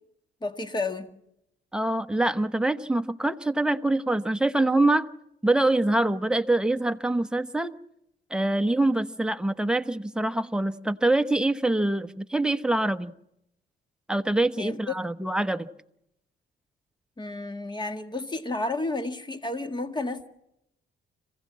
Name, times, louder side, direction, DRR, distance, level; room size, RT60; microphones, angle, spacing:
voice 1, 0.4-1.1 14.6-14.9 17.2-20.3, left 2 dB, 20° left, 1.9 m, -31 dB
voice 2, 1.7-5.1 5.4-7.7 8.3-13.1 14.1-15.7, right 2 dB, 5° right, 1.0 m, -24 dB
26.5 x 16.0 x 7.5 m
cardioid pair, 90°, 20 cm